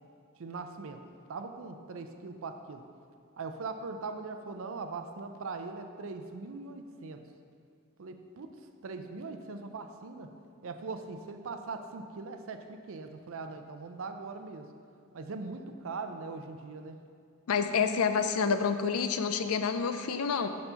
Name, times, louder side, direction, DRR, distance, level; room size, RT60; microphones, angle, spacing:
voice 1, 0.4-1.0 1.3-2.8 3.4-7.2 8.0-8.5 8.8-10.3 10.6-14.7 15.1-17.0, right 4 dB, 65° right, 7 dB, 0.5 m, -40 dB
voice 2, 17.5-20.5, left 6 dB, 80° left, 9 dB, 0.4 m, -28 dB
6.7 x 4.2 x 5.6 m, 2.3 s
head